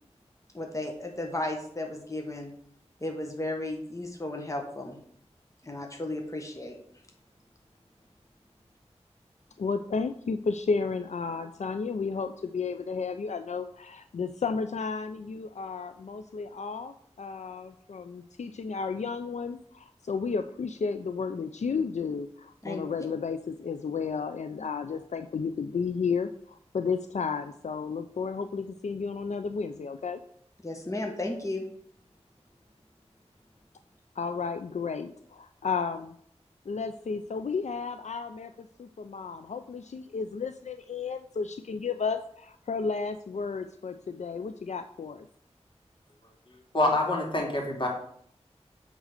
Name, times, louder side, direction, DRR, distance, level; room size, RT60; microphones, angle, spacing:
voice 1, 0.5-2.5 3.0-5.0 5.6-6.8 22.6-23.1 30.6-31.7, left 1 dB, 25° left, 2 dB, 1.3 m, -34 dB
voice 2, 9.6-30.2 34.2-36.1 36.7-45.3, left 5 dB, 80° left, 9 dB, 0.4 m, -33 dB
voice 3, 46.7-47.9, left 2 dB, 45° left, 0 dB, 2.5 m, -26 dB
8.1 x 3.8 x 6.6 m, 0.65 s
wide cardioid pair, 50°, 12 cm